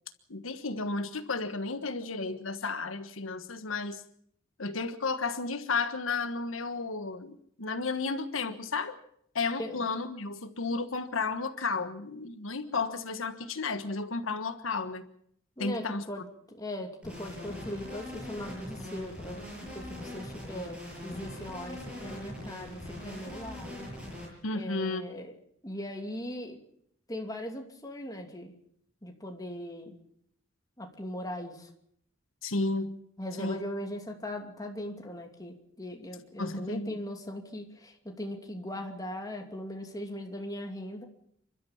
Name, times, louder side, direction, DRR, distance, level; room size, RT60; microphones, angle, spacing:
voice 1, 0.3-4.0 4.6-8.9 9.3-15.1 15.6-16.0 24.4-25.1 32.4-33.0 33.4-33.6 36.4-37.0, left 3 dB, 85° left, 10 dB, 1.4 m, -33 dB
voice 2, 15.6-23.7 24.5-25.3 25.6-26.6 27.1-28.5 29.0-30.0 30.8-31.7 33.2-41.1, left 1 dB, 20° left, 3 dB, 2.7 m, -39 dB
sound 1, 17.0-24.3, left 1 dB, 5° right, 7.5 m, -42 dB
29.5 x 12.5 x 7.3 m, 0.67 s
head